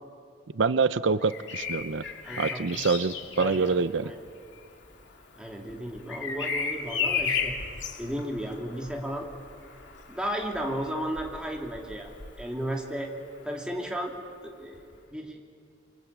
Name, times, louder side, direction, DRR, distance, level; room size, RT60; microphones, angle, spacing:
voice 1, 0.5-2.0 2.4-4.1, right 4 dB, 85° right, 14 dB, 0.7 m, -26 dB
Bird vocalization bird call bird song, 1.2-13.0 14.7-14.9, left 6 dB, 75° left, 2.6 m, -35 dB
voice 2, 2.2-2.8 3.4-3.8 4.0-4.2 5.4-7.6 8.0-9.3 10.1-12.1 12.4-13.1 13.4-14.1 14.4-14.8 15.1-15.4, equal, 5° right, 0 dB, 2.9 m, -34 dB
28.5 x 24.5 x 8.6 m, 2.3 s
head